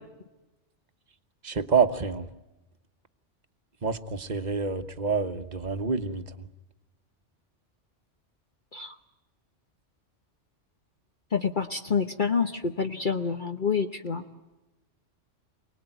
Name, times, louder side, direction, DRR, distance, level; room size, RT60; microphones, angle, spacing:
voice 1, 1.4-2.3 3.8-6.2, right 5 dB, 35° right, 9 dB, 1.2 m, -27 dB
voice 2, 11.3-14.2, left 5 dB, 45° left, 5 dB, 1.2 m, -27 dB
28.0 x 20.0 x 9.1 m, 1.1 s
omnidirectional pair, 1.3 m